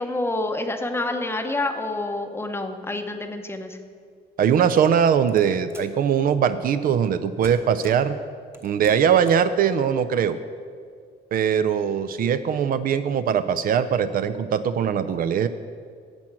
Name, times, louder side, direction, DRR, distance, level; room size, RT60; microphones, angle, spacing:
voice 1, 0.0-3.8, left 2 dB, 15° left, 6 dB, 0.8 m, -28 dB
voice 2, 4.4-8.2 8.6-10.4 11.3-15.5, right 8 dB, 55° right, 12 dB, 0.5 m, -21 dB
sound 1, 4.8-6.0 6.9-7.2 7.4-8.2 8.5-9.5, right 1 dB, 15° right, 1.0 m, -46 dB
10.5 x 7.7 x 7.4 m, 2.1 s
cardioid pair, 150°, 18 cm